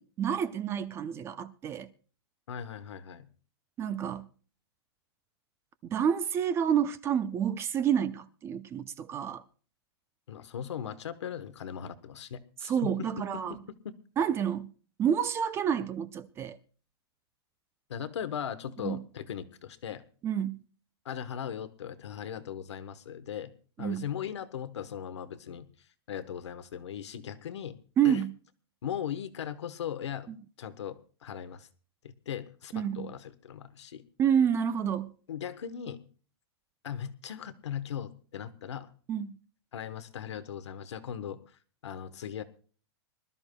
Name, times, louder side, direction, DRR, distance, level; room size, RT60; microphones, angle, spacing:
voice 1, 0.0-1.9 3.8-4.3 5.8-9.4 12.6-13.5 14.2-14.7 15.0-16.6 18.8-19.0 20.2-20.6 23.8-24.1 28.0-28.3 30.3-30.4 32.7-33.1 34.2-35.1 39.1-39.4, right 8 dB, 20° right, 0.5 m, -29 dB
voice 2, 2.5-3.3 10.3-13.1 13.3-13.6 13.8-13.9 17.9-20.0 21.0-23.5 23.8-25.7 26.1-27.8 28.0-28.2 28.8-30.3 30.6-31.7 32.0-34.0 35.3-36.0 36.8-38.9 39.7-41.4 41.8-42.4, left 9 dB, 90° left, 1.2 m, -38 dB
25.5 x 12.5 x 2.3 m
hypercardioid pair, 155°, 14 cm